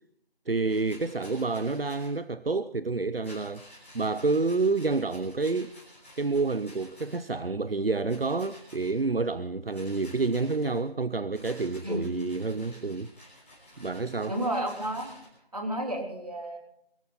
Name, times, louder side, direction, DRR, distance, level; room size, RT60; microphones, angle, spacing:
voice 1, 0.5-3.6 3.9-5.8 6.2-13.1 13.8-14.4, right 3 dB, 70° right, 14 dB, 0.9 m, -28 dB
Rattle, 0.7-2.2 3.2-7.3 8.1-8.9 9.7-10.8 11.3-15.3, left 1 dB, 15° left, 5.9 m, -52 dB
voice 2, 11.8-12.3 14.3-15.1 15.5-16.6, right 1 dB, 40° right, 2 dB, 3.8 m, -32 dB
24.0 x 13.0 x 4.1 m, 0.74 s
figure-of-eight pair, 180°, 30 cm